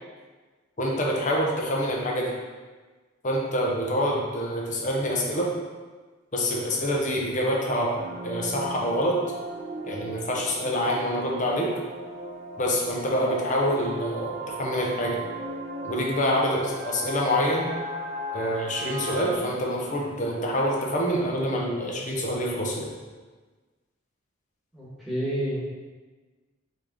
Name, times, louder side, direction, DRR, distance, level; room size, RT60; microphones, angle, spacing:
voice 1, 0.8-2.4 3.2-5.5 6.3-8.0 8.2-9.2 9.8-11.7 12.6-15.2 15.8-17.7 18.3-22.9, equal, 40° left, -2 dB, 0.8 m, -26 dB
sound 1, 8.0-19.4, right 1 dB, 35° right, 0.5 m, -37 dB
voice 2, 24.7-25.6, equal, ahead, -10 dB, 1.5 m, -29 dB
4.2 x 3.5 x 3.6 m, 1.3 s
head